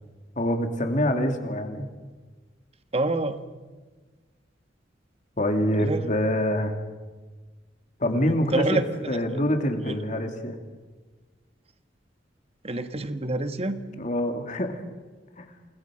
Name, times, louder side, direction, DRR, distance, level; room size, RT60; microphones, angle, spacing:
voice 1, 0.4-1.9 5.4-6.7 8.0-10.6 14.0-14.8 15.4-15.5, equal, 45° left, 5 dB, 2.7 m, -25 dB
voice 2, 2.9-3.4 5.8-6.1 8.1-8.8 9.1-9.4 9.8-10.0 12.6-13.8, right 2 dB, 35° right, 9 dB, 1.4 m, -27 dB
29.0 x 20.0 x 6.4 m, 1.3 s
head